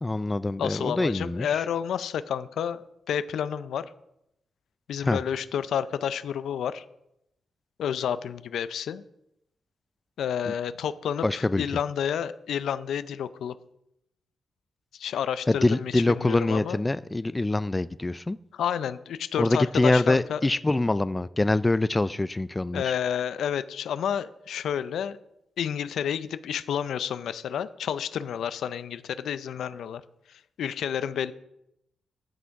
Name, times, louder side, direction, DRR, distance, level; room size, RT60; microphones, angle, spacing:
voice 1, 0.0-1.6 5.0-5.2 10.5-10.6 11.2-11.6 15.5-18.4 19.4-22.9, left 2 dB, 15° left, 0.3 m, -25 dB
voice 2, 0.6-3.9 4.9-6.8 7.8-9.0 10.2-13.6 14.9-16.8 18.5-20.4 22.7-25.2 25.6-30.0 30.6-31.3, left 8 dB, 85° left, 0.5 m, -30 dB
13.5 x 6.2 x 4.6 m
cardioid pair, 100°, 0 cm